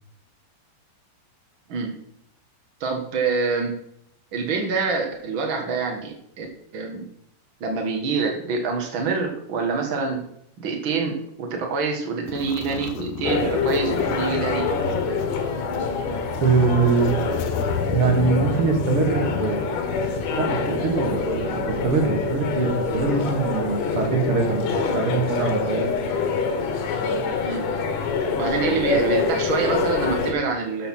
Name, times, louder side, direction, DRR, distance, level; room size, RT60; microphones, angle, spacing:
voice 1, 2.8-3.7 4.3-6.5 6.7-7.0 7.6-10.2 10.6-14.6 27.4-27.7 28.3-30.9, right 4 dB, 70° right, 3 dB, 1.2 m, -26 dB
sound 1, 12.3-15.3 15.7-15.9 16.2-20.3, left 11 dB, 80° left, 2.4 m, -34 dB
sound 2, 13.2-30.3, left 4 dB, 60° left, 2.7 m, -25 dB
voice 2, 16.4-17.1 17.9-19.8 20.3-25.8, right 4 dB, 40° right, 2 dB, 2.5 m, -23 dB
13.0 x 7.0 x 5.8 m, 0.72 s
omnidirectional pair, 4.8 m